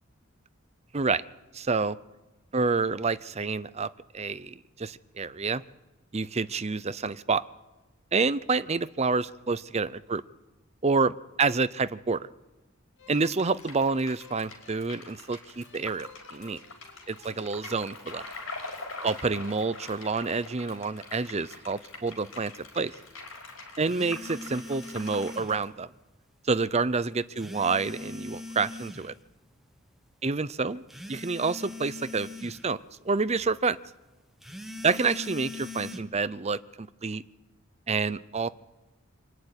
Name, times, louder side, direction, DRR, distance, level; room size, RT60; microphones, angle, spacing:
voice 1, 1.5-2.0 2.5-3.9 4.1-5.6 6.1-7.4 8.1-10.2 10.8-12.3 13.1-16.6 17.1-18.2 19.0-22.9 23.8-25.9 26.4-29.1 30.2-30.8 31.1-32.8 33.0-33.8 34.8-37.2 37.9-38.5, right 4 dB, 30° right, 14 dB, 0.7 m, -28 dB
sound 1, 13.0-18.5, left 4 dB, 60° left, 2.6 m, -56 dB
sound 2, 13.4-25.6, left 3 dB, 80° left, 5.2 m, -44 dB
sound 3, 23.9-25.6 27.4-29.1 30.9-32.6 34.4-36.0, left 2 dB, ahead, 1.4 m, -41 dB
25.0 x 11.0 x 9.8 m, 1.1 s
head